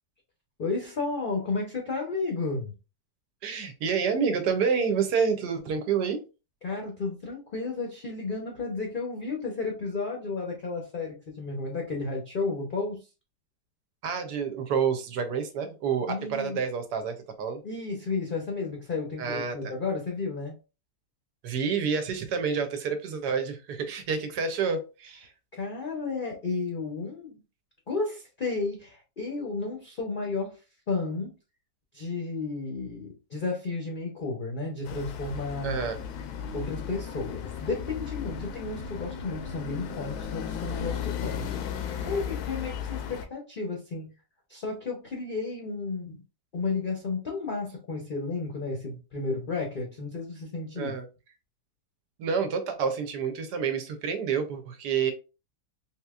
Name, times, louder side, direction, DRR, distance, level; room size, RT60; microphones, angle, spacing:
voice 1, 0.6-2.7 6.6-13.0 16.1-16.6 17.6-20.5 25.5-27.4 27.9-30.6 30.9-31.3 31.9-35.9 36.5-44.1 44.5-46.2 46.5-51.0, left 3 dB, 45° left, 0.7 m, -32 dB
voice 2, 3.4-6.2 14.0-17.6 19.2-19.7 21.4-25.3 35.6-36.0 50.8-51.1 52.2-55.1, right 6 dB, 80° right, 1.3 m, -28 dB
sound 1, 34.8-43.3, left 8 dB, 75° left, 1.0 m, -35 dB
3.8 x 2.9 x 2.3 m
omnidirectional pair, 1.8 m